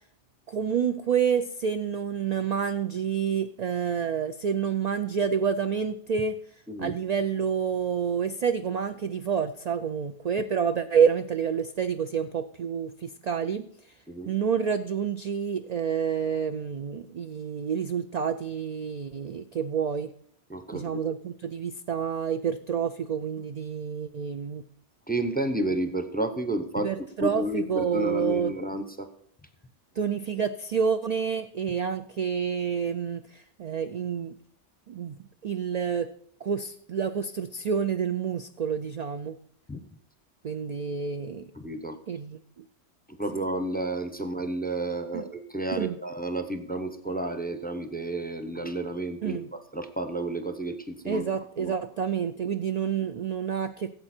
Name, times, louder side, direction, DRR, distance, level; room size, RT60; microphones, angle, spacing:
voice 1, 0.5-6.4 6.8-13.7 14.3-20.1 20.7-24.6 26.8-28.8 30.0-34.3 34.9-35.2 35.4-36.1 36.4-39.4 40.4-41.5 42.1-42.6 43.3-43.4 45.1-45.3 45.7-46.0 49.2-49.5 51.0-53.9, right 7 dB, 60° right, 9 dB, 0.4 m, -28 dB
voice 2, 20.5-21.0 25.1-26.9 27.2-29.1 39.7-39.8 41.5-42.0 43.2-49.4 49.7-51.2 51.6-51.7, right 1 dB, 10° left, 8 dB, 0.7 m, -31 dB
16.0 x 7.8 x 4.4 m, 0.65 s
omnidirectional pair, 1.2 m